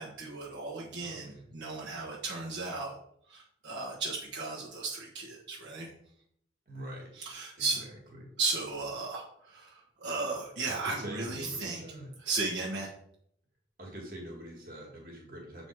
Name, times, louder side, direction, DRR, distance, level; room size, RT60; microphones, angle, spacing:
voice 1, 0.0-2.9 3.3-5.9 7.1-7.8 8.4-11.8 12.2-12.9, right 3 dB, 70° right, -4 dB, 1.4 m, -35 dB
voice 2, 1.0-1.4 6.7-7.1 7.6-7.7 8.2-8.3 10.7-12.1 13.8-15.7, right 1 dB, 50° right, -1 dB, 2.0 m, -44 dB
7.5 x 4.0 x 4.7 m, 0.69 s
head